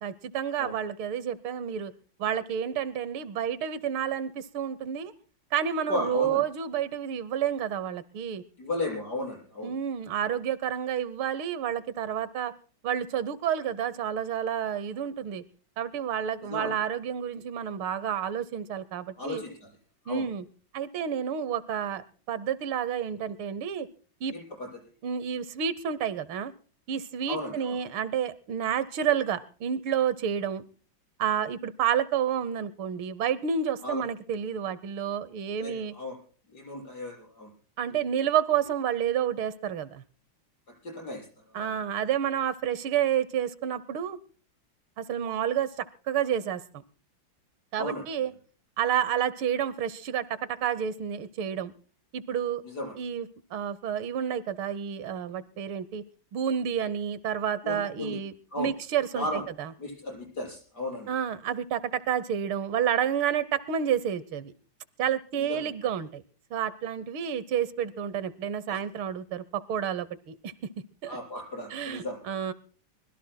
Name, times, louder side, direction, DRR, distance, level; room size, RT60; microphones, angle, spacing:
voice 1, 0.0-1.9 2.2-5.1 5.5-8.4 9.6-12.5 12.8-15.4 15.8-19.4 20.1-20.4 20.7-23.9 24.2-24.3 25.0-26.5 26.9-30.6 31.2-35.9 37.8-40.0 41.5-44.2 45.0-46.6 47.7-48.3 48.8-51.7 52.1-52.6 53.0-53.3 53.5-56.0 56.3-59.3 59.6-59.7 61.1-64.5 65.0-66.2 66.5-70.5 71.0-71.2 71.7-72.5, right 9 dB, 80° right, 17 dB, 1.7 m, -30 dB
voice 2, 5.9-6.4 8.6-9.7 16.4-16.8 19.2-19.8 20.0-20.3 24.3-24.8 27.3-27.8 33.8-34.0 35.6-36.2 36.5-37.5 40.8-41.8 47.8-48.0 52.6-52.9 57.6-58.2 58.5-58.7 59.1-59.4 59.8-61.1 65.4-65.7 68.7-68.8 71.0-72.2, left 1 dB, 50° left, 0 dB, 7.2 m, -35 dB
24.0 x 21.0 x 2.2 m, 0.40 s
omnidirectional pair, 2.3 m